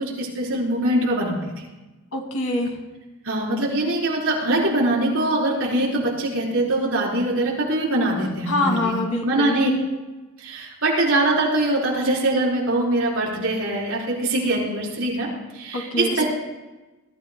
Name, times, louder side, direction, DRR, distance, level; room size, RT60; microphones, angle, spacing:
voice 1, 0.0-1.4 3.2-8.9 9.2-9.7 10.4-15.3 15.5-16.2, right 1 dB, 65° right, -4 dB, 4.3 m, -22 dB
voice 2, 2.1-2.7 8.5-9.6 15.7-16.2, left 2 dB, 70° left, 3 dB, 2.1 m, -25 dB
21.5 x 13.5 x 2.3 m, 1.1 s
head